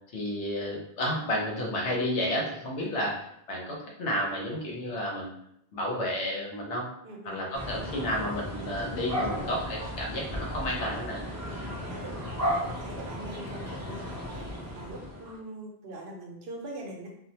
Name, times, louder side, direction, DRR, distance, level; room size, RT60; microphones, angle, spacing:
voice 1, 0.1-5.3 5.7-6.9 7.2-11.2, left 1 dB, 90° left, -2 dB, 1.1 m, -31 dB
voice 2, 7.0-7.4 11.4-14.4 14.7-17.1, right 1 dB, 70° right, -1 dB, 0.9 m, -43 dB
sound 1, 7.5-15.4, equal, 20° right, 0.4 m, -35 dB
2.5 x 2.1 x 2.7 m, 0.74 s
omnidirectional pair, 1.1 m